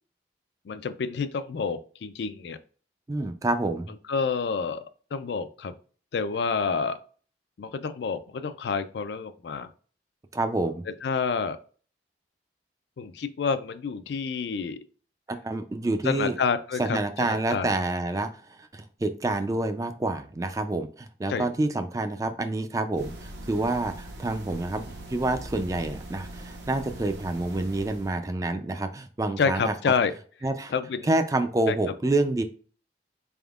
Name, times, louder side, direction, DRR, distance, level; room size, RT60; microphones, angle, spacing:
voice 1, 0.7-2.6 4.1-4.8 5.1-5.7 6.1-7.0 7.6-9.7 11.0-11.6 13.0-14.8 16.0-17.7 21.3-21.5 29.4-30.1 30.7-31.1 31.7-31.8, left 5 dB, 75° left, 11 dB, 0.4 m, -28 dB
voice 2, 3.1-3.9 10.3-10.8 15.3-16.4 16.8-29.7 30.4-30.7 31.0-32.4, right 2 dB, 20° right, 8 dB, 0.3 m, -28 dB
sound 1, 23.0-28.2, right 1 dB, 75° right, 0.9 m, -41 dB
4.2 x 3.5 x 2.3 m, 0.41 s
head